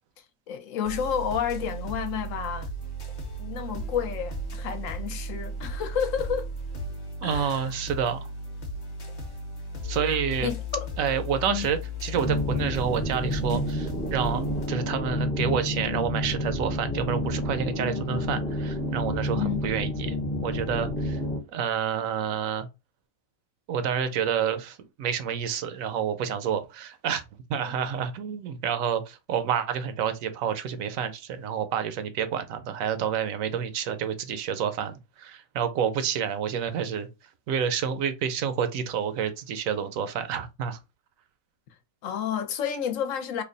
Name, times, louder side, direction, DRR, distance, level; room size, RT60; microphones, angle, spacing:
voice 1, 0.5-2.7 3.4-6.5 7.2-7.7 10.4-10.9 11.5-11.7 19.3-19.6 27.6-27.7 42.0-43.4, left 8 dB, 70° left, 1.0 m, -30 dB
sound 1, 0.9-14.7, right 1 dB, 35° left, 0.8 m, -36 dB
voice 2, 7.2-8.3 9.8-10.5 11.0-21.2 21.5-22.7 23.7-27.2 27.5-37.1 37.5-40.8, right 8 dB, 75° right, 1.0 m, -29 dB
sound 2, 12.1-21.4, left 1 dB, 10° left, 0.4 m, -29 dB
3.3 x 2.2 x 3.8 m
omnidirectional pair, 1.5 m